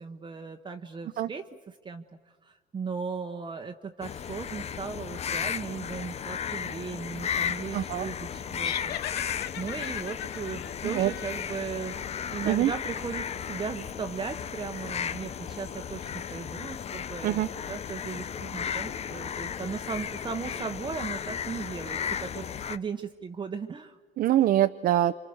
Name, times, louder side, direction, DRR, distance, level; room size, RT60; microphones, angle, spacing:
voice 1, 0.0-2.0 2.4-12.0 12.3-24.0, right 5 dB, 30° right, 5 dB, 1.0 m, -37 dB
sound 1, 4.0-22.8, left 8 dB, 40° left, 0.7 m, -35 dB
voice 2, 7.7-8.1 10.8-11.1 12.4-12.7 17.2-17.5 24.2-25.1, right 13 dB, 60° right, 8 dB, 0.7 m, -24 dB
sound 2, 8.6-12.0, left 12 dB, 75° left, 0.7 m, -39 dB
28.5 x 25.5 x 6.4 m, 1.4 s
cardioid pair, 110°, 17 cm